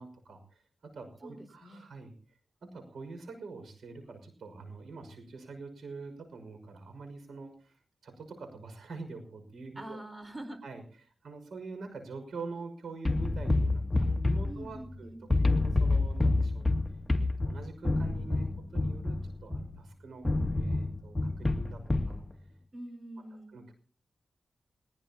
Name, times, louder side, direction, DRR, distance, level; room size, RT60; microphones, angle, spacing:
voice 1, 0.0-2.1 2.6-10.0 10.6-16.8 17.2-20.3 20.5-22.2 23.5-23.7, right 3 dB, 90° right, 7 dB, 5.8 m, -45 dB
voice 2, 1.2-1.9 9.7-10.6 14.5-15.3 22.7-23.6, right 1 dB, 25° right, 8 dB, 4.4 m, -44 dB
sound 1, 13.0-15.0 15.3-19.8 20.2-22.2, left 2 dB, 15° left, 2.4 m, -28 dB
21.5 x 21.0 x 2.9 m, 0.43 s
cardioid pair, 65°, 0 cm